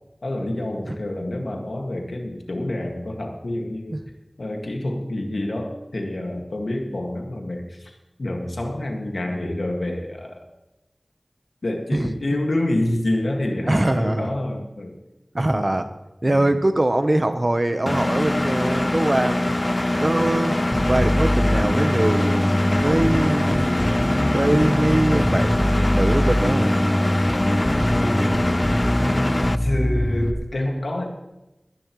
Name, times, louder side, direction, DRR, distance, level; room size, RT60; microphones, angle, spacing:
voice 1, 0.2-4.0 4.4-7.9 8.2-10.4 11.6-15.0 15.5-15.7 16.2-16.6 27.9-31.0, left 1 dB, 90° left, 2 dB, 2.0 m, -28 dB
voice 2, 13.7-14.3 15.3-15.9 16.2-19.6 20.0-20.5 20.9-23.7 24.3-26.8, right 1 dB, 40° right, 9 dB, 0.9 m, -22 dB
Engine, 17.9-29.6, left 1 dB, 30° left, 0.4 m, -23 dB
Bass guitar, 20.7-30.3, equal, 10° left, 1.1 m, -23 dB
21.0 x 10.5 x 3.2 m, 0.99 s
wide cardioid pair, 55°, 0 cm